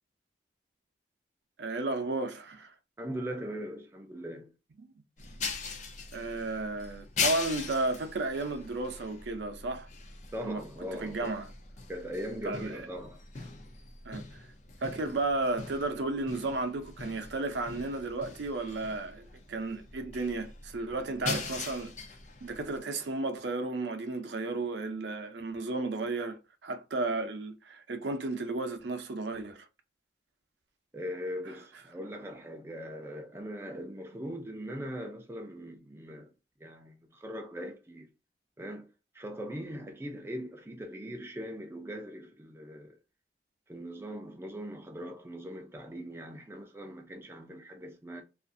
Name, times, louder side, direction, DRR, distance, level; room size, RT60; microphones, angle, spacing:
voice 1, 1.6-2.7 6.1-9.9 10.4-10.6 11.0-11.5 12.4-12.8 14.1-14.2 14.8-21.9 22.4-29.7, right 2 dB, 75° right, 0.5 m, -33 dB
voice 2, 3.0-4.5 10.3-11.3 11.9-13.2 30.9-36.3 36.6-38.1 38.6-38.9 39.1-43.0 43.7-48.2, equal, 15° right, 0.4 m, -40 dB
sound 1, 5.2-22.8, left 5 dB, 40° left, 0.5 m, -40 dB
2.4 x 2.4 x 2.5 m
head